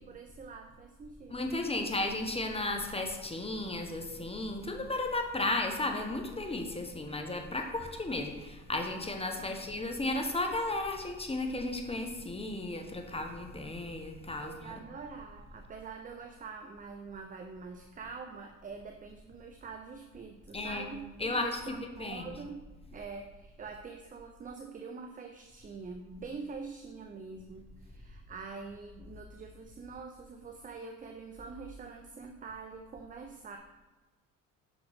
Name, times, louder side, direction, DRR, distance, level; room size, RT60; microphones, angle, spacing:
voice 1, 0.0-1.4 7.1-7.2 9.4-9.7 14.4-33.6, right 5 dB, 20° right, 4 dB, 0.5 m, -45 dB
voice 2, 1.3-14.7 20.5-20.9 21.2-22.2, left 2 dB, 15° left, 4 dB, 1.0 m, -34 dB
6.1 x 5.0 x 3.5 m, 1.2 s
supercardioid pair, 70°, 37 cm